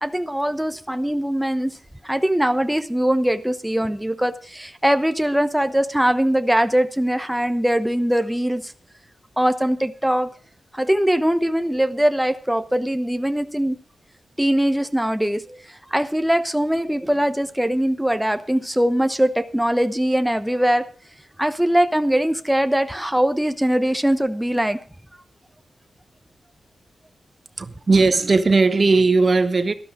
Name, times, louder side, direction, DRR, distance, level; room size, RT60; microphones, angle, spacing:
voice 1, 0.0-1.8 2.0-8.7 9.4-10.3 10.7-13.8 14.4-15.6 15.9-20.9 21.4-24.8, right 1 dB, 5° right, 1.0 m, -21 dB
voice 2, 27.6-29.7, right 3 dB, 50° right, 1.1 m, -17 dB
13.0 x 12.0 x 4.9 m
cardioid pair, 55°, 0 cm